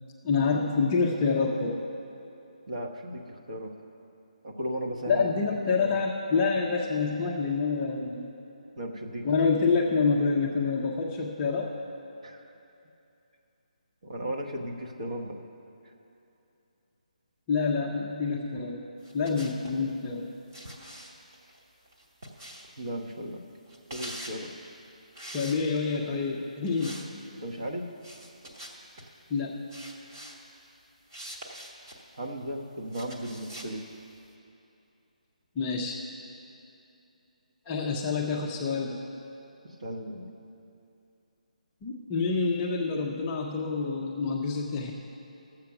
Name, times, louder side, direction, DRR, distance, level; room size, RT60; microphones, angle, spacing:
voice 1, 0.2-1.8 5.1-8.2 9.2-11.7 17.5-18.8 19.1-20.3 25.3-27.0 29.3-29.6 35.6-36.0 37.7-39.0 41.8-44.9, left 4 dB, 10° left, -2 dB, 0.4 m, -27 dB
voice 2, 2.7-3.7 4.4-5.5 5.8-6.1 8.8-9.5 12.2-12.5 14.0-15.4 22.8-23.4 23.9-24.5 27.4-27.9 32.1-33.8 39.8-40.3, right 1 dB, 55° right, 1 dB, 1.2 m, -36 dB
sound 1, 19.0-19.8 20.5-22.9 23.7-24.4 25.1-26.0 26.7-27.1 27.4-27.5 28.0-29.1 29.7-30.4 31.1-32.0 32.9-33.7, right 1 dB, 25° right, 1.0 m, -44 dB
12.5 x 7.6 x 5.8 m, 2.8 s
hypercardioid pair, 175°, 4 cm